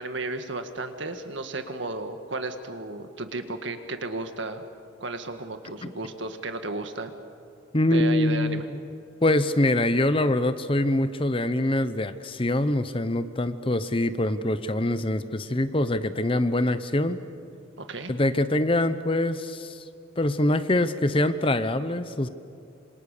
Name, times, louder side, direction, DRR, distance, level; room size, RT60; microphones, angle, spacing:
voice 1, 0.0-4.6 5.0-7.1 7.9-8.7 17.8-18.2, right 2 dB, 65° right, 7 dB, 1.8 m, -33 dB
voice 2, 7.7-8.7 9.2-17.2 18.1-19.8 20.2-22.3, left 1 dB, 25° left, 12 dB, 0.8 m, -24 dB
27.0 x 26.5 x 6.7 m, 2.5 s
head